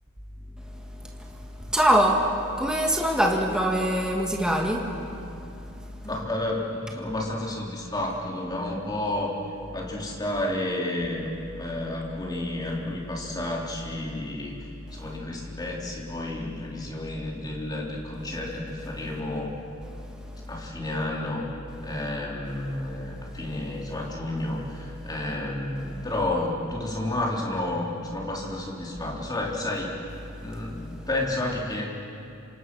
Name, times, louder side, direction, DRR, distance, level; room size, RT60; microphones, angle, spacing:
voice 1, 1.7-2.2 2.6-4.8, equal, 5° right, 0 dB, 2.0 m, -22 dB
voice 2, 6.0-9.3 9.7-14.5 14.9-19.5 20.5-21.4 21.8-29.9 30.4-31.9, left 1 dB, 20° left, -2 dB, 3.8 m, -31 dB
27.0 x 26.5 x 6.3 m, 2.7 s
head